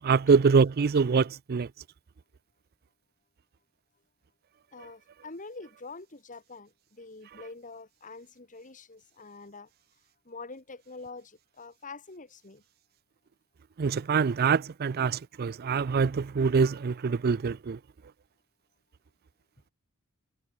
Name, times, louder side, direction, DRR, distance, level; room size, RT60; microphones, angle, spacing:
voice 1, 0.0-1.7 13.8-17.8, right 5 dB, 45° right, 0.4 m, -24 dB
voice 2, 4.7-9.7 10.3-12.6, left 3 dB, 35° left, 2.1 m, -45 dB
head